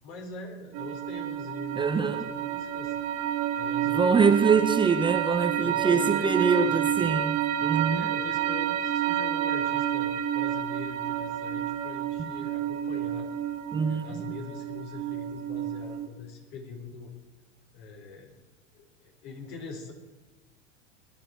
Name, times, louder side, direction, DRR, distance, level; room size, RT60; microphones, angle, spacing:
voice 1, 0.0-3.0 3.5-4.4 5.6-7.0 8.0-13.3 13.9-17.1 17.7-18.3 18.7-19.9, left 3 dB, 60° left, 4.3 m, -42 dB
sound 1, 0.7-16.1, right 10 dB, 50° right, 1.7 m, -29 dB
voice 2, 1.8-2.2 3.9-8.1 12.2-12.3 13.7-14.0, right 5 dB, 15° right, 0.7 m, -24 dB
20.0 x 11.5 x 4.5 m
hypercardioid pair, 95°, 37 cm